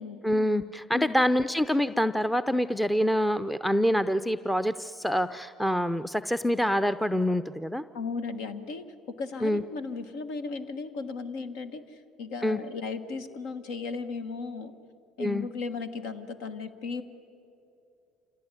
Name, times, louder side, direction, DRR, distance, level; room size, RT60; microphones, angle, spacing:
voice 1, 0.2-7.8 9.4-9.6 12.4-12.6 15.2-15.5, equal, 5° left, 13 dB, 0.6 m, -26 dB
voice 2, 7.9-8.9 9.2-14.7 15.2-17.0, left 4 dB, 75° left, 10 dB, 1.4 m, -36 dB
26.5 x 17.0 x 9.8 m, 2.7 s
supercardioid pair, 80°, 0 cm